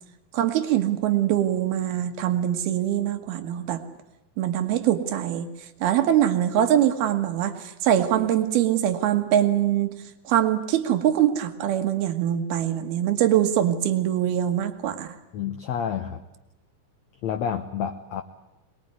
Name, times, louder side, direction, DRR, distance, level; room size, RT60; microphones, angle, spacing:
voice 1, 0.3-3.8 4.4-5.5 5.8-9.9 10.2-15.1, right 11 dB, 90° right, 8 dB, 3.5 m, -23 dB
voice 2, 15.3-16.2 17.2-18.2, left 8 dB, 65° left, 6 dB, 1.9 m, -29 dB
24.0 x 21.0 x 9.6 m, 0.94 s
omnidirectional pair, 4.3 m